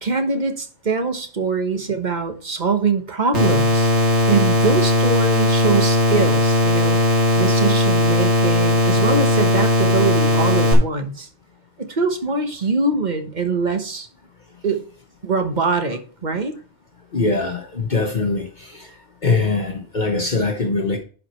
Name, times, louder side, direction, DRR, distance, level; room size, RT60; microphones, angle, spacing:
voice 1, 0.0-3.9 4.3-7.0 7.4-11.3 11.8-14.1 14.6-14.8 15.2-16.6, right 4 dB, 45° right, 1.2 m, -23 dB
sound 1, 3.3-10.7, left 2 dB, 85° right, 2.6 m, -17 dB
voice 2, 17.1-18.9 19.2-21.0, left 3 dB, 45° left, 1.2 m, -22 dB
11.0 x 4.9 x 4.4 m
omnidirectional pair, 1.1 m